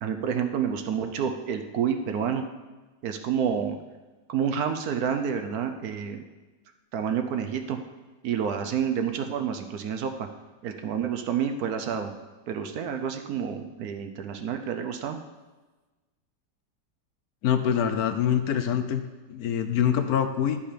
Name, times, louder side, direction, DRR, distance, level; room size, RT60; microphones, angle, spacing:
voice 1, 0.0-2.5 3.0-3.8 4.3-6.2 6.9-7.8 8.2-10.3 10.6-12.1 12.5-15.2, right 7 dB, 65° right, 6 dB, 1.1 m, -29 dB
voice 2, 17.4-19.0 19.3-20.6, left 9 dB, 70° left, 8 dB, 1.0 m, -24 dB
11.0 x 5.5 x 5.1 m, 1.2 s
omnidirectional pair, 1.8 m